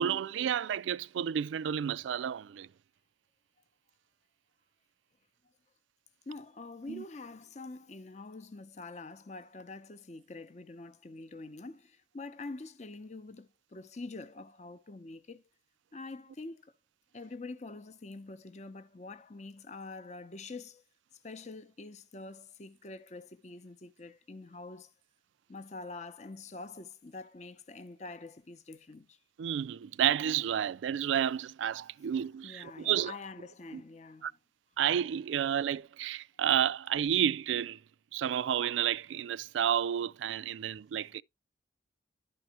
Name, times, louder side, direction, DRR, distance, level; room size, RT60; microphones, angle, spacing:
voice 1, 0.0-2.7 6.9-7.0 29.4-33.1 33.7-33.8 34.2-34.3 34.8-37.8 38.1-41.2, right 9 dB, 85° right, 0.3 m, -31 dB
voice 2, 6.3-15.4 15.9-16.7 17.1-20.8 21.2-24.9 25.5-29.2 32.4-34.4, left 3 dB, 40° left, 0.6 m, -45 dB
12.0 x 4.7 x 2.9 m
head